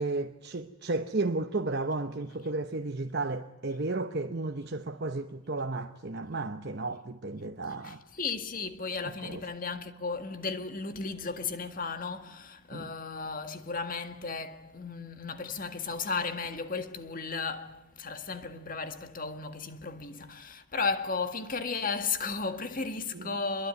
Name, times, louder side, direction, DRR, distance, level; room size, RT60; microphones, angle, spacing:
voice 1, 0.0-8.0 9.2-9.4 12.7-12.9 23.1-23.4, right 3 dB, 50° right, 0.9 m, -33 dB
voice 2, 7.8-23.7, left 4 dB, 40° left, 1.8 m, -35 dB
27.0 x 22.0 x 9.3 m
head